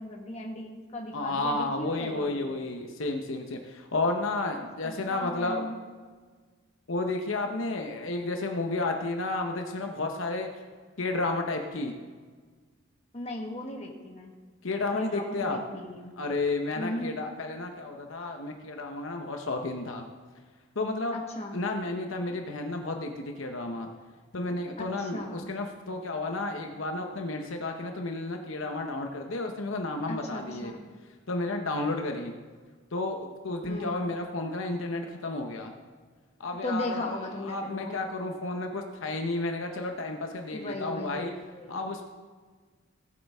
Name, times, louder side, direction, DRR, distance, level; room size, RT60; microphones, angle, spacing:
voice 1, 0.0-2.4 4.8-5.8 13.1-14.4 14.9-16.2 16.7-17.1 21.1-21.6 24.8-25.5 30.1-30.8 33.6-34.0 36.6-38.0 40.5-41.8, left 1 dB, 30° left, 1 dB, 1.4 m, -37 dB
voice 2, 1.1-5.6 6.9-10.5 11.0-11.9 14.6-15.6 16.2-20.0 20.8-21.2 21.5-23.9 24.3-30.7 31.3-32.4 32.9-35.8 36.4-41.3 41.7-42.0, left 2 dB, 65° left, 3 dB, 0.9 m, -32 dB
17.5 x 8.5 x 3.6 m, 1.5 s
head